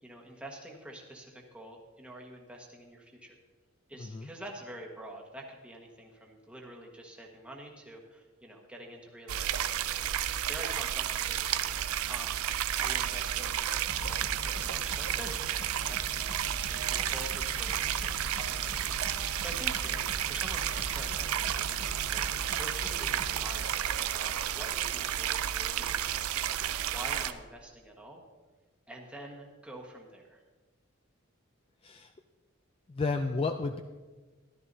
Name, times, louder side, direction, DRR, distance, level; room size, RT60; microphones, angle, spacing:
voice 1, 0.0-3.4 3.9-9.7 9.9-10.1 10.5-11.8 12.1-13.7 14.0-26.6 26.9-28.2 28.9-30.4, right 1 dB, 5° right, -1 dB, 1.4 m, -47 dB
voice 2, 4.0-4.3 31.8-32.1 32.9-33.8, left 3 dB, 25° left, 7 dB, 0.3 m, -32 dB
sound 1, 9.3-27.3, right 11 dB, 90° right, 0.5 m, -32 dB
sound 2, 13.9-23.5, left 1 dB, 10° left, 2.1 m, -42 dB
14.0 x 12.5 x 2.7 m, 1.3 s
head